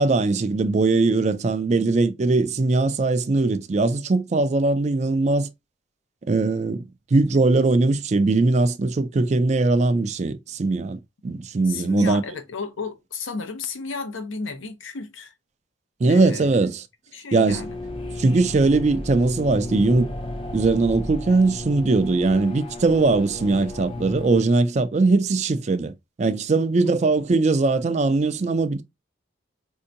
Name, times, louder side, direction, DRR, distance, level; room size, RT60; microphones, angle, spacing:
voice 1, 0.0-5.5 6.3-12.2 16.0-16.8 17.3-17.6 18.2-20.1 20.5-25.9 26.2-28.8, right 3 dB, 35° right, 0.3 m, -20 dB
voice 2, 11.6-15.3 16.0-16.6 17.1-17.8, left 4 dB, 90° left, 0.7 m, -33 dB
sound 1, 17.5-24.4, left 2 dB, 30° left, 0.5 m, -34 dB
4.4 x 2.7 x 2.5 m
head